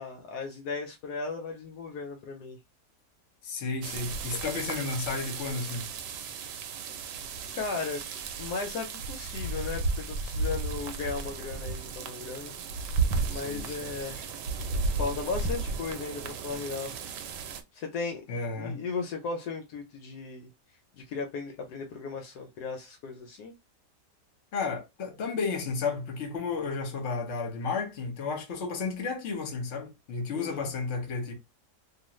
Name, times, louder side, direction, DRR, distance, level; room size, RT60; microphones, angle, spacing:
voice 1, 0.0-2.6 7.5-8.1 8.4-12.5 13.2-14.3 14.9-17.0 17.7-18.2 18.6-20.5 20.9-23.5 30.3-30.7, left 4 dB, 75° left, 1.1 m, -36 dB
voice 2, 3.4-5.9 13.3-13.9 18.3-18.8 24.5-31.3, left 4 dB, 50° left, 1.1 m, -33 dB
sound 1, 3.8-17.6, right 4 dB, 90° right, 1.2 m, -34 dB
2.7 x 2.4 x 3.0 m
omnidirectional pair, 1.8 m